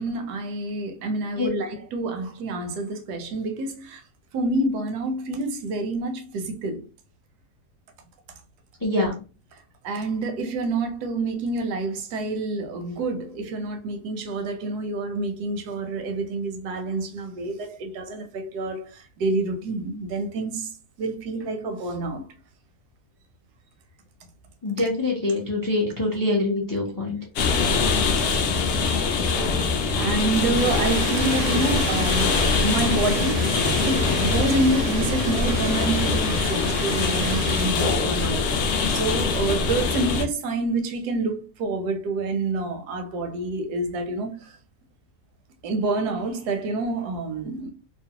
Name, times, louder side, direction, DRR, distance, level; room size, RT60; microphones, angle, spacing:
voice 1, 0.0-4.0 4.3-6.9 9.8-20.7 21.0-22.3 28.2-28.3 28.9-29.0 30.0-38.5 38.9-44.6 45.6-47.7, right 2 dB, 85° right, 1.2 m, -28 dB
voice 2, 8.8-9.2 24.6-27.2, left 2 dB, 30° left, 0.3 m, -24 dB
sound 1, 27.4-40.3, left 4 dB, 70° left, 0.6 m, -23 dB
sound 2, 30.6-37.7, right 5 dB, 65° right, 0.8 m, -33 dB
2.9 x 2.0 x 2.8 m
omnidirectional pair, 1.7 m